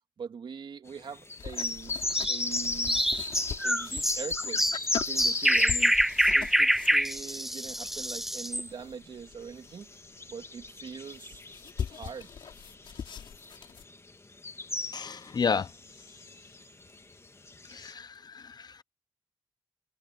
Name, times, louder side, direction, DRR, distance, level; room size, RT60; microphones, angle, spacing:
voice 1, 0.2-2.0 2.3-3.0 3.6-4.6 5.0-6.0 6.3-9.9 10.3-11.4 11.9-12.3, right 6 dB, 75° right, 3.0 m, -42 dB
sound 1, 1.1-7.7 8.1-17.9, left 3 dB, 30° left, 2.0 m, -35 dB
sound 2, 1.4-10.0 10.3-10.4 10.6-13.8, left 7 dB, 85° left, 5.4 m, -41 dB
sound 3, 2.1-8.7, equal, 5° right, 1.3 m, -26 dB
voice 2, 14.9-15.7 17.7-18.8, left 6 dB, 55° left, 0.8 m, -32 dB
cardioid pair, 55°, 8 cm